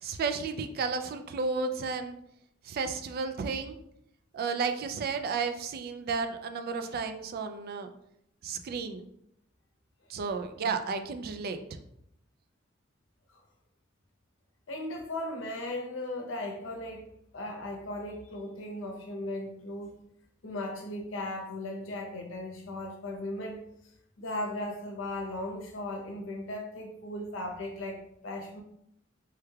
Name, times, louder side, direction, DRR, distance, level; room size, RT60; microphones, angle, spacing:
voice 1, 0.0-2.2 2.6-3.8 4.3-7.9 8.4-9.0 10.1-11.6, right 4 dB, 50° right, 7 dB, 0.3 m, -32 dB
voice 2, 14.7-17.0 17.3-20.0 20.4-23.6 24.2-28.6, left 1 dB, 70° left, 2 dB, 0.7 m, -37 dB
3.3 x 3.2 x 2.2 m, 0.76 s
head